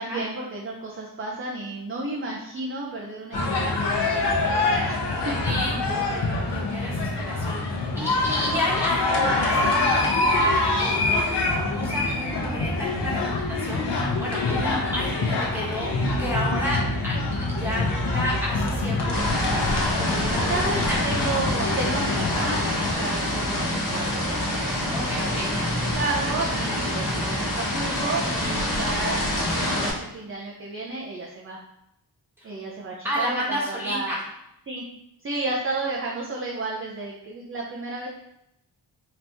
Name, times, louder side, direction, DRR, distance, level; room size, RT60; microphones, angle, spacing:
voice 1, 0.0-5.3 20.5-24.4 24.7-31.6 32.4-34.2 34.7-34.9 35.2-38.1, right 2 dB, 30° right, -2 dB, 0.5 m, -32 dB
sound 1, 3.3-22.9, left 2 dB, 75° left, 0.9 m, -25 dB
voice 2, 5.4-11.4 11.7-15.9 16.2-19.6 20.0-21.0 22.8-23.1 24.9-25.5 26.8-26.9 28.4-28.6 32.4-32.5 33.0-34.2, equal, 5° right, -6 dB, 1.2 m, -32 dB
sound 2, 19.1-29.9, left 1 dB, 50° left, 1.1 m, -26 dB
4.2 x 2.9 x 3.4 m, 0.82 s
wide cardioid pair, 165°, 42 cm